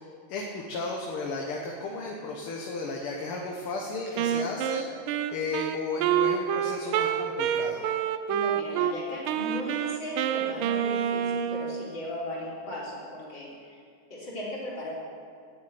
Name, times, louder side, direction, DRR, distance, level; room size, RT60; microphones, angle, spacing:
voice 1, 0.3-4.9 5.3-7.9, left 3 dB, 75° left, 0 dB, 2.0 m, -34 dB
Wind instrument woodwind instrument, 4.2-8.9 9.3-11.9, right 9 dB, 75° right, 1.4 m, -28 dB
voice 2, 8.3-13.8 14.1-14.9, left 1 dB, 60° left, -6 dB, 4.3 m, -37 dB
12.0 x 7.6 x 9.3 m, 2.2 s
omnidirectional pair, 2.4 m